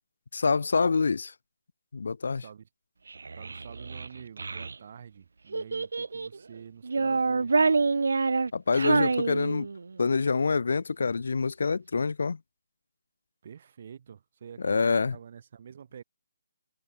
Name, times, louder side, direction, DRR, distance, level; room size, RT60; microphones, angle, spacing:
voice 1, 0.3-1.3 1.9-2.4 8.5-9.7 10.0-12.4 14.6-15.2, left 4 dB, 60° left, 0.8 m, -26 dB
voice 2, 2.3-2.7 3.3-7.6 13.4-14.8 15.1-16.0, right 7 dB, 30° right, 6.0 m, -47 dB
Child speech kid speaking, 3.1-4.8 5.5-6.4 6.8-10.0, right 4 dB, 70° right, 0.6 m, -27 dB
hypercardioid pair, 180°, 0 cm